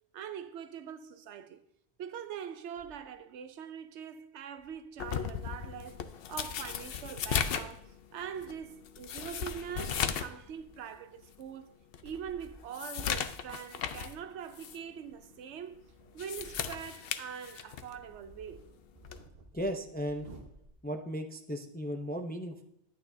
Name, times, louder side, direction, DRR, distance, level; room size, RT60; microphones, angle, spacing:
voice 1, 0.1-1.6 2.0-11.8 12.0-15.8 16.1-18.7, right 8 dB, 85° right, 0.9 m, -43 dB
sound 1, 2.8-3.3 4.6-6.5 7.2-7.7 8.4-8.5 9.0-10.9 12.0-12.6 13.3-16.8 17.2-17.3 17.7-21.0, right 1 dB, 60° right, 1.3 m, -57 dB
sound 2, 5.0-10.4 10.7-10.8 11.4-11.5 11.9-14.2 14.5-14.8 16.0-18.0 19.0-19.3, left 8 dB, 65° left, 0.8 m, -36 dB
voice 2, 19.5-20.3 20.8-22.7, equal, 15° left, 0.4 m, -36 dB
11.0 x 9.3 x 2.7 m
omnidirectional pair, 1.1 m